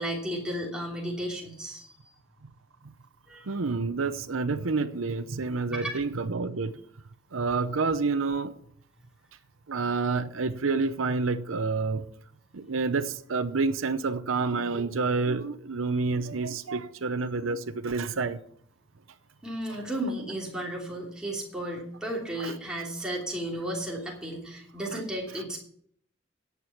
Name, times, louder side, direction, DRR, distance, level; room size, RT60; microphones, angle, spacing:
voice 1, 0.0-2.0 3.3-3.5 5.7-6.0 19.4-25.6, right 1 dB, 5° right, 3.0 m, -34 dB
voice 2, 3.4-6.8 7.3-8.5 9.7-12.1 12.5-18.4 19.7-19.8 22.4-22.5 24.9-25.0 25.3-25.4, right 4 dB, 90° right, 0.7 m, -28 dB
11.5 x 8.3 x 5.9 m
head